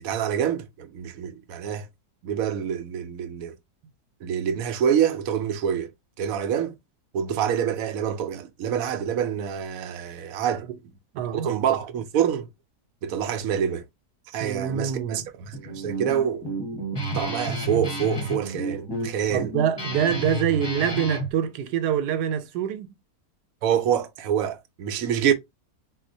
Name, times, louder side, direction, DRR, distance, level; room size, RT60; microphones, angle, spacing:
voice 1, 0.0-1.9 2.2-3.5 4.2-5.9 6.2-6.8 7.1-10.7 11.3-12.5 13.0-13.8 14.3-16.5 17.1-19.5 23.6-25.3, right 9 dB, 70° right, 0.9 m, -26 dB
voice 2, 11.1-11.6 14.4-15.3 19.3-22.9, right 9 dB, 85° right, 1.2 m, -25 dB
Guitar, 15.5-21.3, right 1 dB, 25° left, 0.7 m, -31 dB
4.3 x 2.1 x 2.6 m
omnidirectional pair, 1.7 m